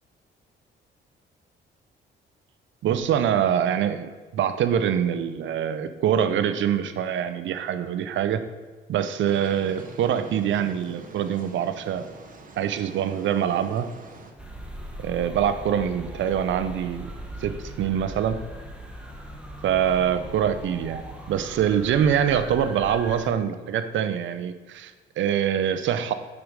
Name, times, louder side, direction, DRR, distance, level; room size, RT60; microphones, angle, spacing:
voice 1, 2.8-8.4 8.9-12.1 12.6-13.9 15.0-17.1 17.4-18.4 19.6-21.0 21.3-26.1, right 9 dB, 75° right, 11 dB, 0.7 m, -24 dB
sound 1, 9.2-14.3, right 3 dB, 45° right, 1.2 m, -44 dB
sound 2, 14.4-23.3, right 1 dB, 5° right, 1.2 m, -39 dB
8.5 x 4.7 x 5.4 m, 1.4 s
cardioid pair, 90°, 20 cm